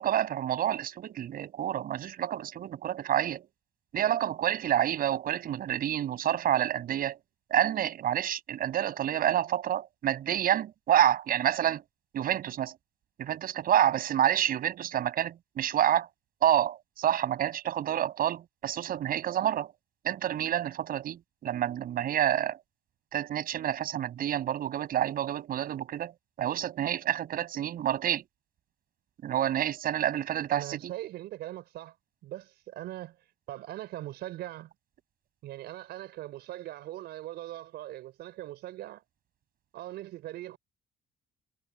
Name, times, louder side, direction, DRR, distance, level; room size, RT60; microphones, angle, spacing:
voice 1, 0.0-3.5 3.9-7.2 7.5-11.8 12.1-12.7 13.2-16.1 16.4-19.7 20.0-22.6 23.1-26.1 26.4-28.2 29.2-30.9, right 11 dB, 60° right, 7.4 m, -28 dB
voice 2, 30.5-32.0 32.2-34.7 35.4-39.0 39.7-40.6, right 14 dB, 75° right, 5.4 m, -41 dB
cardioid pair, 110°, 17 cm